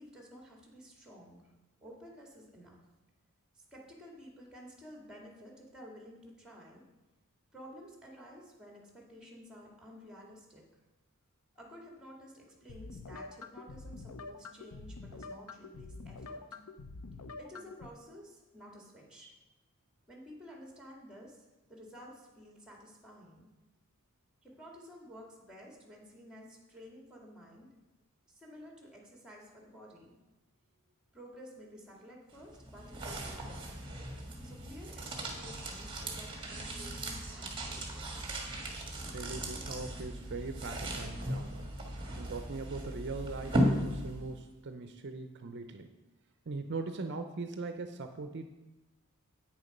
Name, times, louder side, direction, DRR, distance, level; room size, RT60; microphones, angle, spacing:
voice 1, 0.0-1.5 1.8-2.8 3.5-6.8 7.5-10.7 11.5-16.6 17.4-19.3 20.1-23.5 24.4-27.7 28.3-30.2 31.1-33.8 34.4-38.4, equal, 5° right, 0 dB, 1.9 m, -52 dB
sound 1, 12.7-17.9, left 3 dB, 90° left, 0.6 m, -46 dB
sound 2, 32.3-44.5, equal, 20° right, 1.5 m, -37 dB
voice 2, 39.1-41.6 42.2-45.9 46.5-48.5, right 3 dB, 55° right, 7 dB, 0.6 m, -40 dB
8.8 x 6.8 x 5.2 m, 1.1 s
head